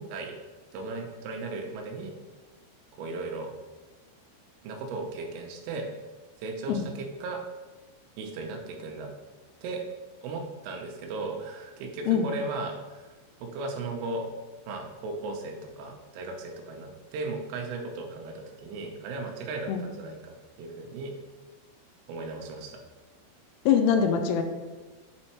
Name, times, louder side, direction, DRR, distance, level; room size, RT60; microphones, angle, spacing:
voice 1, 0.7-2.1 3.0-3.5 4.6-5.9 6.4-7.4 8.2-9.1 9.6-9.9 10.2-13.1 13.4-14.3 14.7-21.1 22.1-22.8, right 3 dB, 90° right, 2 dB, 3.4 m, -36 dB
voice 2, 23.7-24.4, left 7 dB, 85° left, 6 dB, 3.1 m, -23 dB
7.9 x 4.4 x 4.3 m, 1.3 s
omnidirectional pair, 5.6 m